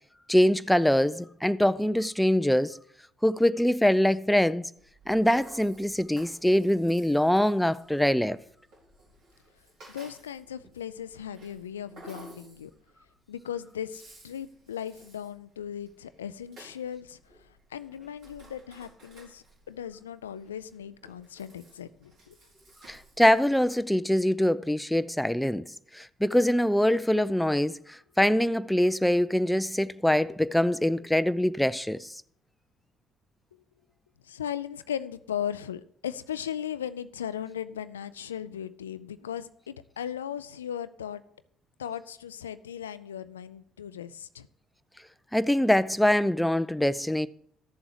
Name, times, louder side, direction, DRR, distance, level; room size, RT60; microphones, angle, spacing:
voice 1, 0.3-2.8 3.2-4.7 5.1-8.4 22.9-32.1 45.3-47.3, left 1 dB, 5° left, 0.5 m, -24 dB
Rattle (instrument), 4.8-23.7, right 1 dB, 60° right, 4.1 m, -55 dB
voice 2, 9.9-12.7 13.3-22.4 34.2-41.2 41.8-44.5, left 9 dB, 85° left, 0.3 m, -37 dB
13.5 x 7.2 x 4.9 m
figure-of-eight pair, 50°, 0 cm